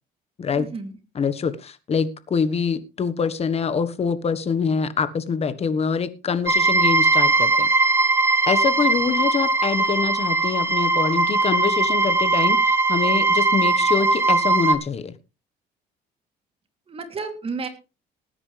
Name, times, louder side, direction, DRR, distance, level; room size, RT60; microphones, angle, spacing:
voice 1, 0.5-0.9 16.9-17.7, right 4 dB, 35° right, 6 dB, 3.0 m, -31 dB
voice 2, 1.1-7.7 8.5-15.1, left 6 dB, 35° left, 13 dB, 1.4 m, -25 dB
sound 1, 6.5-14.7, right 3 dB, 15° right, 1.3 m, -20 dB
19.0 x 9.7 x 3.4 m, 0.30 s
cardioid pair, 110°, 17 cm